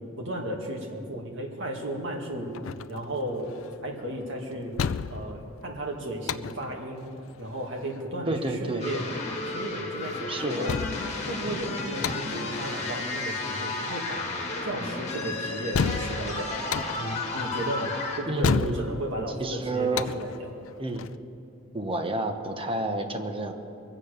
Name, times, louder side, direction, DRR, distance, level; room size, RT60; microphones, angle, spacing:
voice 1, 0.2-2.5 2.9-3.6 3.8-4.7 5.1-7.1 7.4-9.1 9.4-10.8 11.3-16.5 17.0-20.5, right 1 dB, 65° right, 0 dB, 2.3 m, -34 dB
sound 1, 1.9-21.2, left 6 dB, 70° left, 0.4 m, -34 dB
voice 2, 8.3-8.9 10.3-10.7 18.2-19.0 19.4-20.1 20.8-21.1 21.7-23.5, right 2 dB, 25° right, 5 dB, 1.1 m, -30 dB
sound 2, 8.8-18.2, left 2 dB, 35° left, 2.0 m, -33 dB
22.5 x 7.6 x 6.7 m, 2.6 s
head